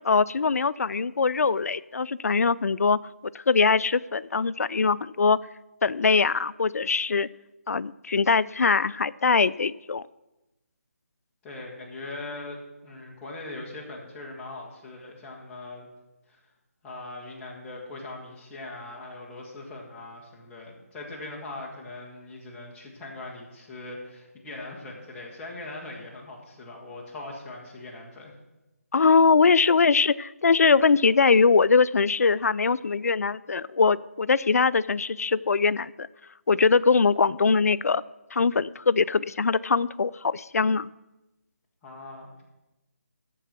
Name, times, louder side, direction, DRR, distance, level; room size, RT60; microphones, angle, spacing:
voice 1, 0.0-3.0 3.3-5.4 5.8-7.3 7.7-10.1 28.9-36.1 36.5-38.0 38.3-40.9, left 4 dB, 75° left, 19 dB, 0.4 m, -22 dB
voice 2, 11.4-15.9 16.3-16.4 16.8-28.3 41.8-42.4, left 2 dB, 10° left, -4 dB, 1.5 m, -40 dB
13.5 x 4.6 x 7.4 m, 1.0 s
figure-of-eight pair, 165°, 8 cm